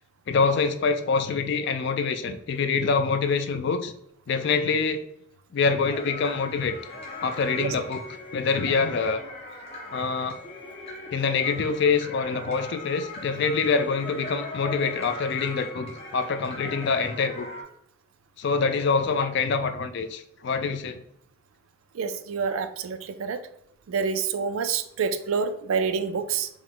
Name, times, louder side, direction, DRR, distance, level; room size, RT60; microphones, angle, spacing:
voice 1, 0.3-3.9 4.3-5.1 5.5-6.8 7.2-8.0 8.3-9.2 9.9-10.4 11.1-17.5 18.4-21.0, left 5 dB, 55° left, 9 dB, 0.4 m, -25 dB
sound 1, 5.9-17.6, left 2 dB, 30° left, 0.8 m, -40 dB
voice 2, 21.9-23.4 23.9-26.5, right 5 dB, 75° right, 10 dB, 0.4 m, -27 dB
4.7 x 2.1 x 3.7 m, 0.75 s
head